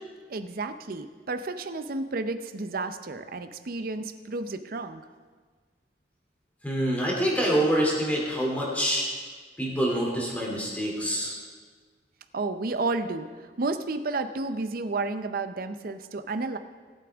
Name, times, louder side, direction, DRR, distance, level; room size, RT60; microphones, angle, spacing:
voice 1, 0.3-5.0 12.3-16.6, right 3 dB, 55° right, 9 dB, 0.6 m, -31 dB
voice 2, 6.6-9.0 9.6-11.4, right 1 dB, 10° left, -3 dB, 2.7 m, -26 dB
18.0 x 8.6 x 3.5 m, 1.5 s
head